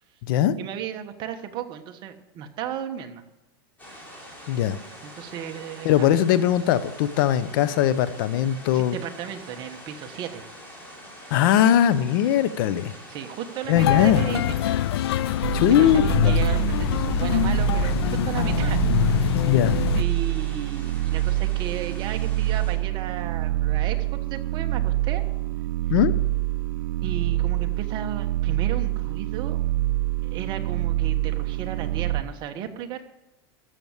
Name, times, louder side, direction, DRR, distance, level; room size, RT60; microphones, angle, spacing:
voice 1, 0.6-3.2 5.0-6.1 8.7-10.5 13.1-14.8 15.7-18.0 18.2-19.4 19.9-24.0 24.3-25.2 27.0-29.6 30.2-33.0, right 9 dB, 35° right, 6 dB, 1.3 m, -34 dB
sound 1, 3.8-22.7, equal, 15° left, 3.8 m, -45 dB
voice 2, 4.5-4.8 5.8-8.9 11.3-12.9 13.7-14.2 15.5-16.3 19.5-19.8 25.9-26.1, left 10 dB, 55° left, 14 dB, 0.9 m, -20 dB
sound 2, 13.7-20.0, left 13 dB, 75° left, 0.5 m, -24 dB
sound 3, 15.4-32.2, right 16 dB, 55° right, 0.7 m, -26 dB
14.0 x 7.1 x 8.1 m, 0.99 s
supercardioid pair, 150°, 13 cm